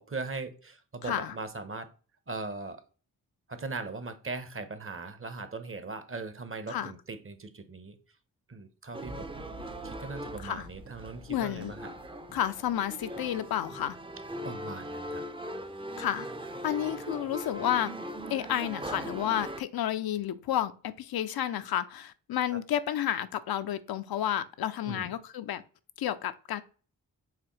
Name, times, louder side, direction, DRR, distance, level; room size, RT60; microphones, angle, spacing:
voice 1, 0.0-1.9 2.3-2.8 3.5-8.0 8.5-9.3 9.8-11.9 14.4-15.2 22.5-22.6 24.9-25.1, right 3 dB, 35° right, 0.9 m, -39 dB
sound 1, 8.9-19.6, right 1 dB, 15° right, 0.5 m, -40 dB
sound 2, 9.0-13.4, right 1 dB, 85° right, 2.1 m, -49 dB
voice 2, 11.3-11.7 12.3-14.0 16.0-16.3 16.6-17.9 18.3-25.6 26.0-26.6, left 11 dB, 65° left, 0.5 m, -31 dB
4.8 x 3.2 x 3.1 m
supercardioid pair, 40°, 40 cm